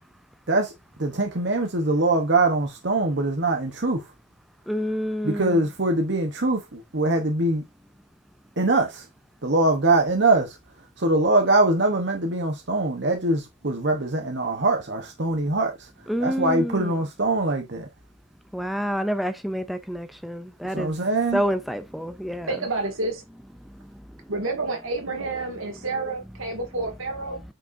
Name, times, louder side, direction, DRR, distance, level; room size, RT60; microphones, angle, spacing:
voice 1, 1.0-4.0 5.2-7.6 8.6-9.0 9.4-10.6 11.0-15.9 16.2-17.9 20.7-21.4, right 2 dB, 55° right, 1.0 m, -23 dB
voice 2, 4.7-5.6 16.1-16.9 18.5-21.0 21.3-22.5 23.6-24.3, equal, ahead, 0.4 m, -28 dB
voice 3, 22.5-23.2 24.3-27.4, right 2 dB, 90° right, 2.2 m, -29 dB
8.9 x 5.1 x 2.6 m
head